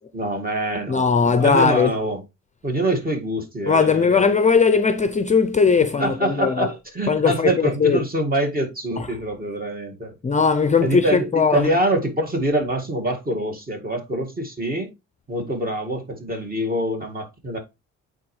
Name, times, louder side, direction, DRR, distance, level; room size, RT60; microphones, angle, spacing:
voice 1, 0.1-2.2 2.6-4.3 6.0-10.2 10.8-14.9 15.3-17.6, right 1 dB, 30° right, 2.0 m, -25 dB
voice 2, 0.9-1.9 3.7-6.7 7.1-8.0 9.0-9.1 10.2-11.7, left 5 dB, 25° left, 0.6 m, -19 dB
8.6 x 4.0 x 3.2 m
cardioid pair, 90°, 30 cm